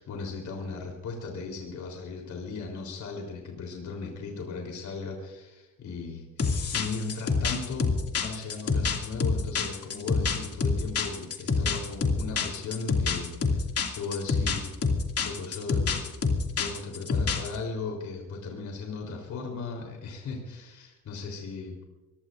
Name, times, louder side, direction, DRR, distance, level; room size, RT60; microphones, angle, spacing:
voice 1, 0.0-14.9 15.2-16.1 16.5-21.8, left 4 dB, 70° left, 1 dB, 3.8 m, -37 dB
sound 1, 6.4-17.6, left 4 dB, 50° left, 2.5 m, -27 dB
24.5 x 17.5 x 2.6 m, 1.1 s
cardioid pair, 90°, 30 cm